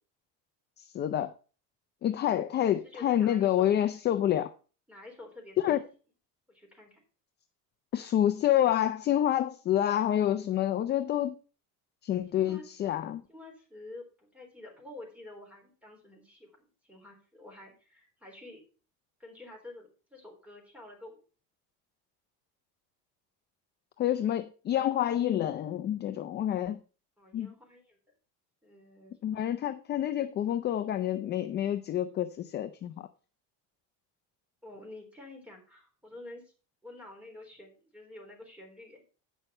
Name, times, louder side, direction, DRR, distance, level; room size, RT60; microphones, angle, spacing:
voice 1, 0.8-1.3 2.0-4.5 5.6-5.8 7.9-11.4 12.0-13.2 24.0-26.8 27.3-27.5 29.2-33.1, left 11 dB, 30° left, 0.5 m, -28 dB
voice 2, 2.2-3.7 4.9-5.8 6.5-7.0 12.3-12.9 13.3-18.6 19.2-21.2 27.2-28.0 28.6-29.5 34.6-36.5 36.8-39.0, left 2 dB, 5° right, 3.8 m, -49 dB
9.0 x 6.3 x 5.3 m
cardioid pair, 155°, 35 cm